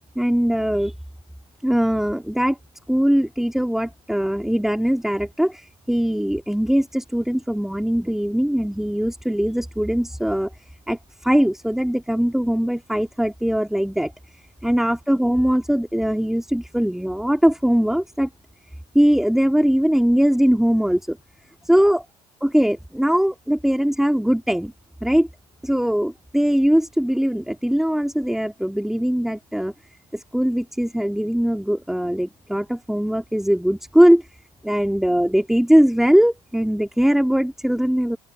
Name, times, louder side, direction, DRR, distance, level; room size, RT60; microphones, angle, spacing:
voice 1, 0.2-0.9 1.6-2.6 2.9-10.5 10.9-14.1 14.6-18.3 18.9-21.2 21.6-22.0 22.4-24.7 25.0-25.3 25.6-29.7 30.1-34.3 34.6-38.2, equal, ahead, 2.6 m, -20 dB
open air
figure-of-eight pair, 60°, 20 cm